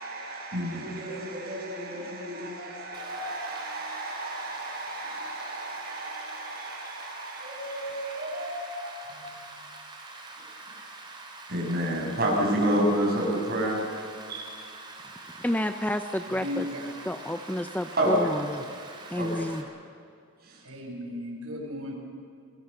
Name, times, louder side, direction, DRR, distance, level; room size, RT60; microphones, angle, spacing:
voice 1, 0.0-9.5 11.5-13.8 14.3-14.5 17.9-18.6 19.2-19.7 20.4-20.6, right 1 dB, 45° right, 7.4 m, -30 dB
Rain, 2.9-19.6, right 2 dB, 20° right, 3.3 m, -45 dB
voice 2, 15.4-16.4 17.1-18.4 19.1-19.6, left 1 dB, 5° left, 0.6 m, -29 dB
voice 3, 16.1-16.9 20.6-21.9, left 1 dB, 75° right, 6.1 m, -36 dB
28.5 x 22.0 x 6.8 m
head